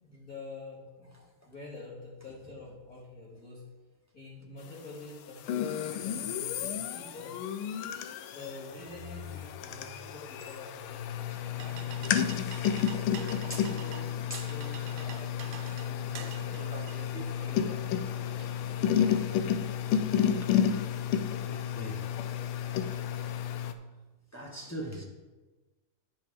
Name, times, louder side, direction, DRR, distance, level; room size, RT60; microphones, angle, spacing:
voice 1, 0.0-1.1 1.4-3.6 4.1-7.4 8.3-12.0 13.1-18.1, left 2 dB, 45° left, -8 dB, 2.8 m, -47 dB
sound 1, 5.4-23.7, left 9 dB, 80° left, 1.5 m, -31 dB
voice 2, 7.8-8.2 13.0-13.2 13.5-13.7 14.3-14.5 18.6-18.7 19.1-19.2 20.4-20.5 21.4-22.1 24.3-25.0, right 1 dB, 20° left, -3 dB, 0.5 m, -42 dB
sound 2, 11.1-19.1, right 11 dB, 75° right, 1.3 m, -48 dB
10.5 x 5.0 x 4.9 m, 1.2 s
omnidirectional pair, 2.4 m